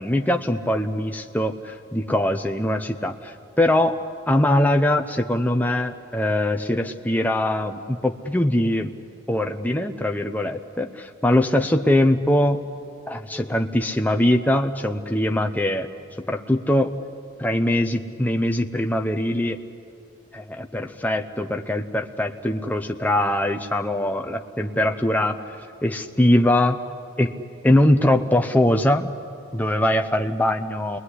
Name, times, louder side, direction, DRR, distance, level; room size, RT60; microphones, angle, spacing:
voice 1, 0.0-4.0 4.3-8.9 9.3-12.6 13.1-15.9 16.3-17.0 17.4-19.6 20.3-25.4 25.8-26.8 27.2-29.1 29.5-31.0, left 1 dB, 10° left, 4 dB, 0.8 m, -22 dB
29.0 x 21.0 x 9.9 m, 2.4 s
head